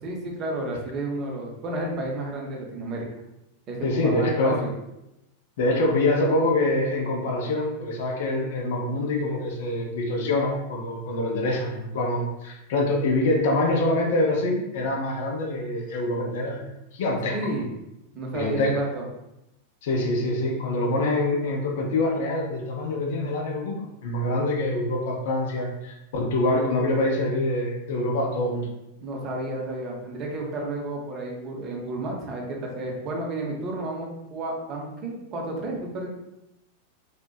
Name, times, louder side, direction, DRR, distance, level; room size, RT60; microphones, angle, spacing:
voice 1, 0.0-3.1 3.7-4.7 17.3-17.7 18.1-19.0 29.0-36.1, right 2 dB, 35° right, 0 dB, 0.5 m, -31 dB
voice 2, 3.8-4.6 5.6-17.5 18.3-18.7 19.8-28.7, left 2 dB, 55° left, 1 dB, 0.4 m, -25 dB
2.5 x 2.1 x 2.2 m, 0.90 s
figure-of-eight pair, 90°, 0 cm